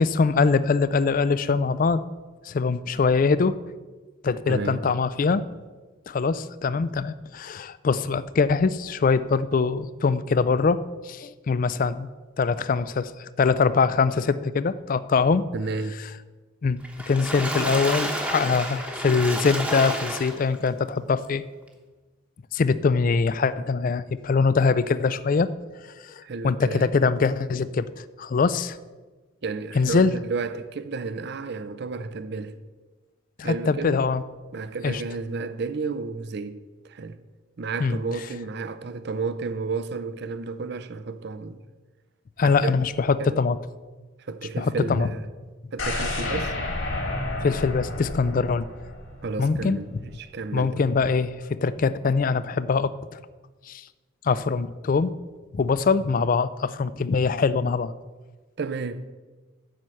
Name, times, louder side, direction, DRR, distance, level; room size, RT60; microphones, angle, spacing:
voice 1, 0.0-2.0 2.4-3.6 4.2-5.5 6.1-12.1 12.4-15.4 16.6-16.8 17.1-21.4 22.5-25.5 26.0-28.8 29.7-30.1 33.4-34.2 34.8-35.0 37.8-38.0 42.4-43.6 44.6-45.1 47.4-48.7 49.4-49.8 50.5-53.2 53.7-53.9 54.2-55.1 55.5-57.9, left 4 dB, 40° left, 0.3 m, -23 dB
voice 2, 4.5-4.8 15.5-16.0 26.2-27.0 29.4-32.5 33.4-34.1 34.5-37.2 37.6-41.6 42.4-42.7 43.2-43.4 44.3-45.3 45.7-46.5 49.2-50.8 58.6-59.1, right 4 dB, 50° right, 0.5 m, -32 dB
Water / Splash splatter, 16.8-20.7 21.2-21.3 21.7-21.8, right 1 dB, 5° right, 1.0 m, -30 dB
sound 1, 45.8-49.8 50.1-50.2, left 2 dB, 65° left, 2.5 m, -31 dB
7.6 x 5.6 x 7.7 m
head